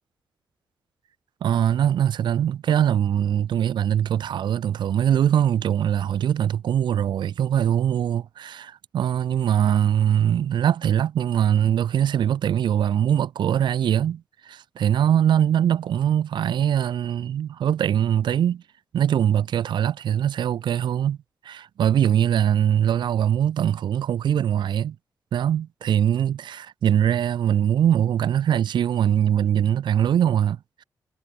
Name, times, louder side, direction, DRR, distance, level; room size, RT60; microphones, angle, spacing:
voice 1, 1.4-18.6 18.9-21.2 21.4-25.0 25.3-30.8, right 9 dB, 85° right, 2.4 m, -22 dB
cardioid pair, 70°, 8 cm